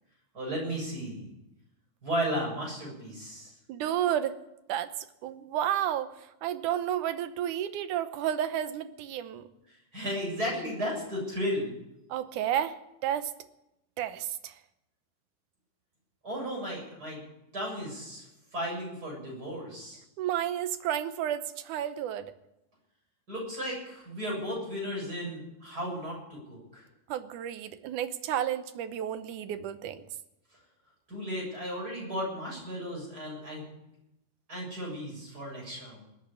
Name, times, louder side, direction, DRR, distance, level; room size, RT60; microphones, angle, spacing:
voice 1, 0.3-1.3 2.0-3.5 9.9-11.8 16.2-17.2 17.5-18.2 18.5-20.0 23.3-26.8 31.1-33.6 34.5-36.0, equal, 30° right, -2 dB, 7.7 m, -34 dB
voice 2, 3.7-4.4 4.7-4.9 5.2-6.1 6.4-9.5 12.1-12.8 13.0-13.3 14.0-14.5 20.2-22.3 27.1-30.0, right 11 dB, 80° right, 11 dB, 2.4 m, -31 dB
20.0 x 8.6 x 8.4 m, 0.88 s
omnidirectional pair, 3.6 m